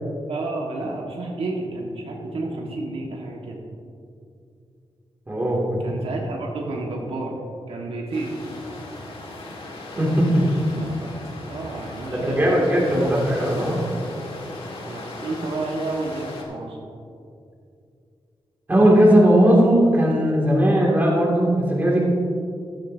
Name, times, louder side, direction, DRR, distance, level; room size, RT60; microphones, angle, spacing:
voice 1, 0.3-3.6 5.8-7.3 7.7-8.3 10.7-11.2 11.5-12.5 12.9-13.2 13.5-13.7 14.8-16.8, right 2 dB, 75° right, -2 dB, 1.7 m, -31 dB
voice 2, 5.3-6.0 10.0-10.5 12.1-13.8 18.7-22.0, equal, 20° right, -4 dB, 2.5 m, -18 dB
sound 1, 8.1-16.4, left 2 dB, 70° left, 1.9 m, -37 dB
14.5 x 12.5 x 2.8 m, 2.5 s
wide cardioid pair, 170°, 10 cm